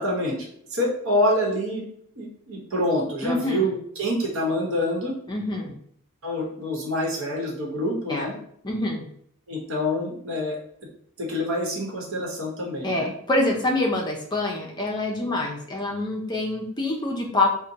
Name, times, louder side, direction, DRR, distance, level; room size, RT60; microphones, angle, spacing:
voice 1, 0.0-1.8 2.2-5.2 6.2-8.3 9.5-10.6 10.8-10.9 11.2-13.1, left 1 dB, 65° right, -1 dB, 1.0 m, -26 dB
voice 2, 3.2-3.6 5.3-5.7 8.1-8.2 8.6-9.0 12.8-17.5, left 2 dB, 20° left, -1 dB, 0.5 m, -25 dB
4.1 x 2.1 x 2.7 m, 0.65 s
head